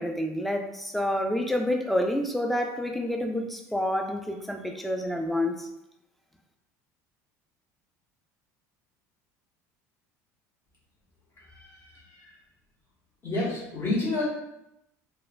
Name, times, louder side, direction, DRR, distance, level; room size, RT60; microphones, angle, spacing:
voice 1, 0.0-5.7, left 1 dB, ahead, 3 dB, 0.3 m, -28 dB
voice 2, 11.5-12.2 13.2-14.3, left 2 dB, 35° left, -7 dB, 1.1 m, -30 dB
3.0 x 2.2 x 2.4 m, 0.84 s
supercardioid pair, 105°, 8 cm